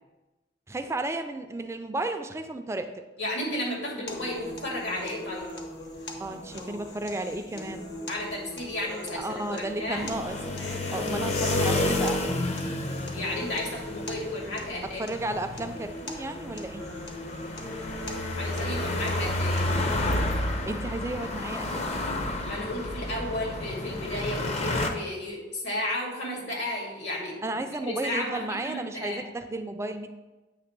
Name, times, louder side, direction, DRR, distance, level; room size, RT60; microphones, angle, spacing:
voice 1, 0.7-2.9 6.2-7.9 9.1-10.4 10.9-12.2 15.0-16.9 20.6-22.0 27.4-30.1, right 2 dB, 15° right, 7 dB, 0.4 m, -33 dB
voice 2, 3.2-5.6 8.1-10.1 11.1-11.3 13.1-15.0 18.4-19.7 22.4-27.5 27.8-29.2, left 1 dB, 75° left, -2 dB, 2.3 m, -33 dB
sound 1, 4.1-20.1, left 1 dB, 60° left, 1.1 m, -39 dB
sound 2, 10.0-24.9, left 2 dB, 35° left, 0.6 m, -31 dB
8.8 x 3.3 x 6.0 m, 1.1 s
head